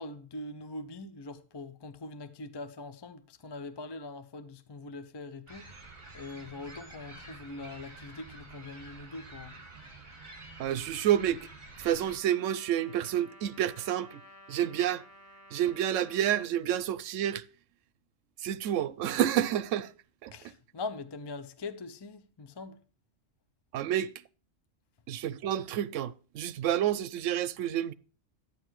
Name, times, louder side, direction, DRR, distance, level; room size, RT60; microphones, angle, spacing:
voice 1, 0.0-5.8 6.1-9.6 20.3-22.8, left 3 dB, 30° left, 0.5 m, -42 dB
sound 1, 5.5-12.2, right 2 dB, 35° right, 2.2 m, -49 dB
voice 2, 10.6-11.5 11.8-14.2 14.5-15.0 15.5-17.5 18.4-19.9 20.2-20.3 23.7-24.1 25.1-27.9, right 11 dB, 80° right, 1.0 m, -29 dB
Trumpet, 11.8-16.5, equal, 75° left, 2.2 m, -53 dB
11.0 x 9.3 x 3.1 m
omnidirectional pair, 1.3 m